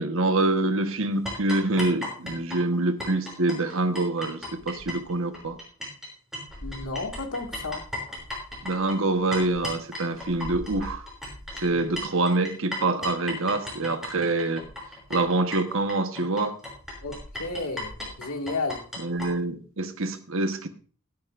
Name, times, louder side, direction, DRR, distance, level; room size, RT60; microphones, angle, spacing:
voice 1, 0.0-5.6 8.6-11.0 11.6-14.7 15.1-16.6 19.0-20.7, right 2 dB, 65° right, 8 dB, 1.2 m, -26 dB
sound 1, 1.3-6.1 6.3-19.3, left 1 dB, ahead, 5.7 m, -36 dB
voice 2, 6.6-7.8 11.7-11.8 17.0-18.8, left 3 dB, 90° left, 3 dB, 2.0 m, -32 dB
17.5 x 10.5 x 2.5 m, 0.40 s
head